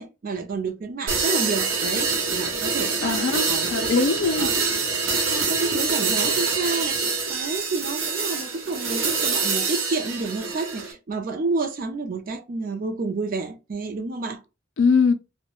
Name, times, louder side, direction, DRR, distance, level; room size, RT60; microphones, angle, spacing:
voice 1, 0.0-3.2 3.5-3.9 4.4-4.5 5.3-14.4, right 3 dB, 45° right, 0.4 m, -29 dB
sound 1, 1.1-10.9, right 4 dB, 80° right, 0.8 m, -25 dB
voice 2, 3.0-4.5 14.8-15.1, left 5 dB, 65° left, 0.4 m, -21 dB
2.3 x 2.1 x 3.0 m
head